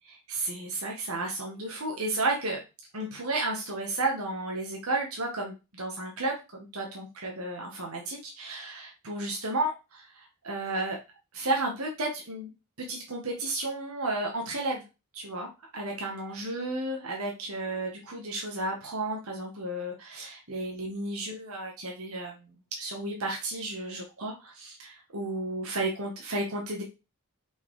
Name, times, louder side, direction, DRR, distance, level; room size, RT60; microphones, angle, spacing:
voice 1, 0.1-2.6 2.9-11.0 11.3-12.5 12.9-14.8 15.1-22.5 22.8-26.8, right 2 dB, 80° right, 0 dB, 1.9 m, -33 dB
5.6 x 5.4 x 5.0 m, 0.28 s
head